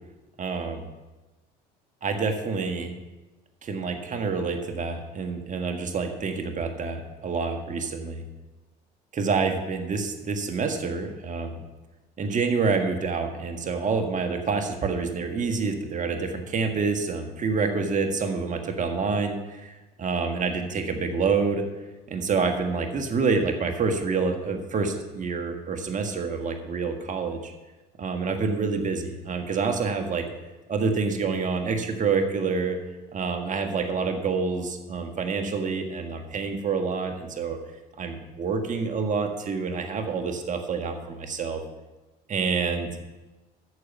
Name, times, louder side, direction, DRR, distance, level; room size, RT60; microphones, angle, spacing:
voice 1, 0.4-0.9 2.0-2.9 3.6-8.2 9.1-11.5 12.2-21.6 22.1-27.5 28.0-30.2 30.7-32.8 33.1-37.6 38.0-41.6 42.3-42.9, right 4 dB, 40° right, 5 dB, 1.6 m, -27 dB
9.5 x 6.8 x 7.1 m, 1.1 s
supercardioid pair, 85°, 19 cm